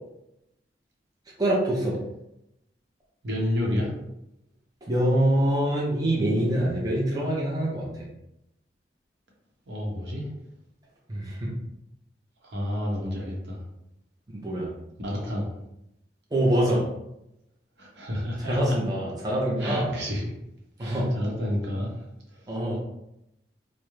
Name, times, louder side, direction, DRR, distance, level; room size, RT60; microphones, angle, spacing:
voice 1, 1.4-2.0 4.8-8.1 11.1-11.5 14.3-14.7 16.3-16.9 18.4-20.0 20.8-21.1 22.5-22.8, right 1 dB, 20° right, -4 dB, 0.5 m, -25 dB
voice 2, 3.2-3.9 9.7-10.3 12.4-13.6 15.0-15.5 17.8-18.6 19.6-20.2 20.8-22.0 22.3-22.4, left 1 dB, 80° right, -2 dB, 0.7 m, -30 dB
2.3 x 2.0 x 3.0 m, 0.84 s
head